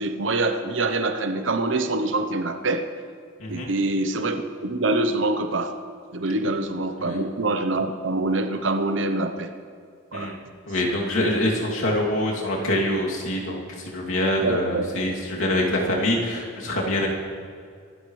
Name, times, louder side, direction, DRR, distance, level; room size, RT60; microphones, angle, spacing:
voice 1, 0.0-2.9 3.5-5.7 6.1-9.5 10.1-10.4 14.4-14.9 15.9-16.0, right 2 dB, 65° right, 7 dB, 0.9 m, -25 dB
voice 2, 3.4-3.7 7.0-7.2 10.1-10.4 10.7-17.1, left 1 dB, 80° left, -3 dB, 2.8 m, -25 dB
24.0 x 12.0 x 3.3 m, 2.3 s
head